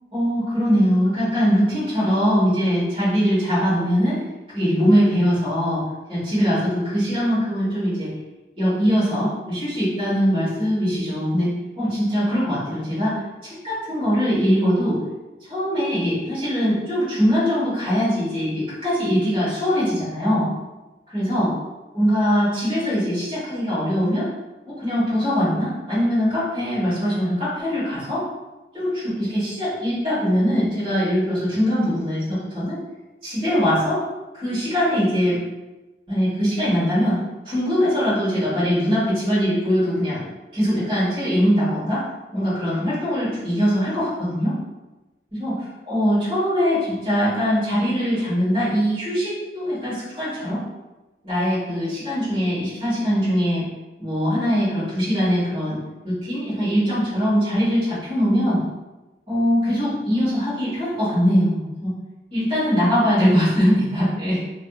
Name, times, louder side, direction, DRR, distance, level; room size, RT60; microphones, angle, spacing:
voice 1, 0.1-4.2 4.5-5.8 6.1-8.1 8.6-15.0 15.5-20.5 21.1-21.5 21.9-24.3 24.7-28.2 28.7-32.8 33.2-34.0 34.3-35.4 36.1-37.2 37.4-40.2 40.5-42.0 42.3-44.5 45.3-45.5 45.8-50.6 51.2-53.6 54.0-55.8 56.0-58.6 59.3-61.9 62.3-64.4, equal, 30° right, -12 dB, 1.5 m, -21 dB
2.6 x 2.3 x 2.4 m, 1.1 s
head